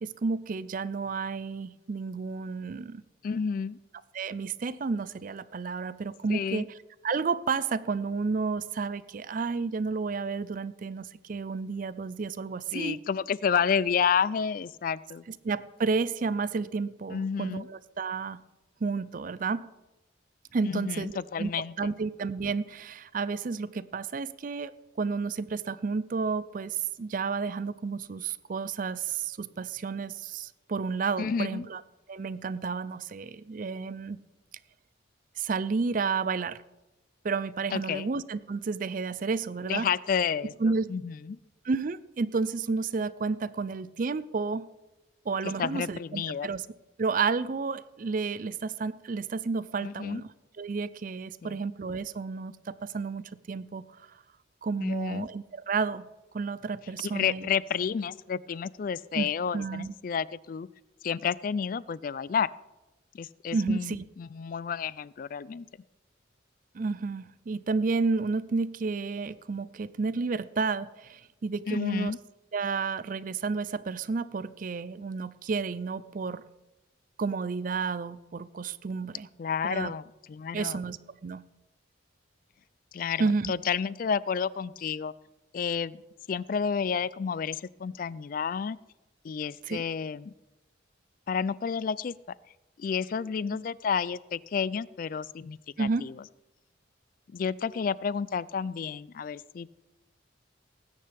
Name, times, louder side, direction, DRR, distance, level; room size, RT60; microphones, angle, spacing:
voice 1, 0.0-3.0 4.1-6.6 7.0-13.0 15.4-18.4 18.8-19.7 20.5-21.1 21.4-21.5 21.8-24.7 25.0-31.8 32.1-34.2 35.4-36.6 37.2-39.9 40.6-40.9 41.6-44.7 45.3-46.6 47.0-50.3 50.6-53.9 54.6-56.1 56.3-57.5 59.1-59.9 63.5-64.0 66.7-72.1 72.5-76.4 77.2-79.3 79.6-79.9 80.5-81.4 83.2-83.5 89.6-89.8 95.8-96.1, right 4 dB, 45° right, 17 dB, 0.4 m, -31 dB
voice 2, 3.2-3.8 6.3-6.7 12.7-15.2 17.1-17.7 20.6-21.7 31.2-31.7 37.7-38.1 39.6-40.5 40.9-41.4 45.4-46.5 49.8-50.2 51.4-51.6 54.8-55.3 57.0-60.7 61.0-62.5 63.1-65.6 71.7-72.2 79.4-80.8 82.9-85.1 85.5-86.0 86.3-88.8 89.2-90.3 91.3-92.1 92.8-96.1 97.3-99.7, left 6 dB, 45° left, 20 dB, 0.3 m, -30 dB
19.5 x 9.8 x 3.4 m, 1.0 s
head